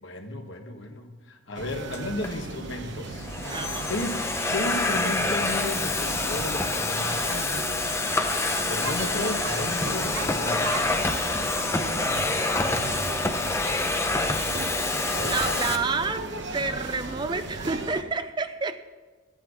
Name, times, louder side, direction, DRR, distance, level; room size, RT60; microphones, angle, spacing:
voice 1, 0.0-4.2 4.5-7.5 8.7-10.8, left 1 dB, 65° left, 4 dB, 1.5 m, -34 dB
sound 1, 1.5-18.0, right 2 dB, 60° right, 1.0 m, -36 dB
Domestic sounds home sounds, 1.9-2.3 3.0-15.8, left 2 dB, 15° left, 0.7 m, -27 dB
voice 2, 3.5-3.9 15.2-16.3 16.5-18.8, right 4 dB, 20° right, 11 dB, 0.4 m, -29 dB
12.5 x 9.1 x 6.3 m, 1.3 s
head